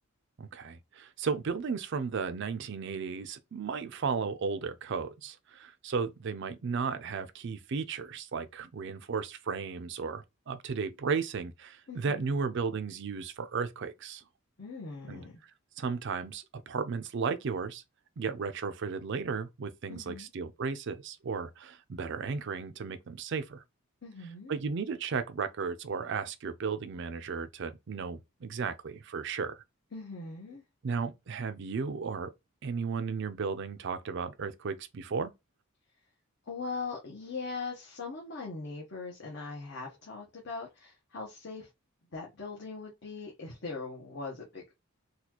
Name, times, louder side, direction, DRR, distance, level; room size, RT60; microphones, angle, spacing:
voice 1, 0.4-14.2 15.1-15.2 15.8-17.8 18.2-23.6 24.5-29.6 30.8-32.3 32.6-35.3, right 5 dB, 60° right, 0.4 m, -34 dB
voice 2, 11.9-12.4 14.6-15.4 19.9-20.3 24.0-24.5 29.9-30.6 36.5-41.7 42.1-44.7, left 4 dB, 60° left, 0.9 m, -40 dB
4.1 x 2.3 x 2.9 m
head